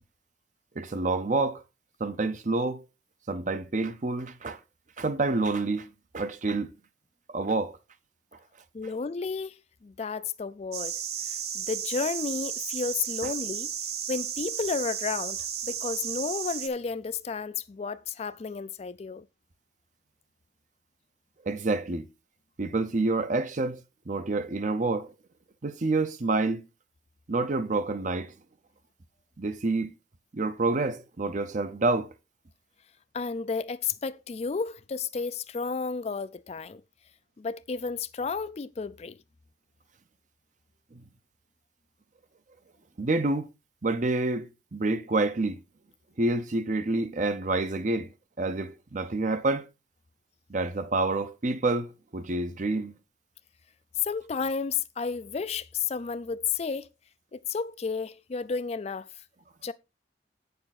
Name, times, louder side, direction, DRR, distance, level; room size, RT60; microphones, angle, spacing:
voice 1, 0.8-1.6 2.0-2.8 3.3-4.6 5.0-5.9 6.1-6.7 7.3-7.8 13.2-13.3 21.4-22.1 22.6-23.8 24.1-25.1 25.6-26.7 27.3-28.3 29.4-29.9 30.3-32.1 40.9-41.0 43.0-43.5 43.8-45.6 46.2-48.1 48.4-49.7 50.5-52.9, right 3 dB, 45° right, 0.7 m, -28 dB
voice 2, 8.7-10.9 11.5-13.7 14.1-15.4 15.6-19.2 33.1-36.8 37.4-39.2 54.0-56.9 57.3-59.1 59.6-59.7, left 5 dB, 35° left, 0.4 m, -32 dB
sound 1, 10.7-16.7, right 8 dB, 60° right, 1.1 m, -34 dB
8.7 x 6.8 x 4.1 m
head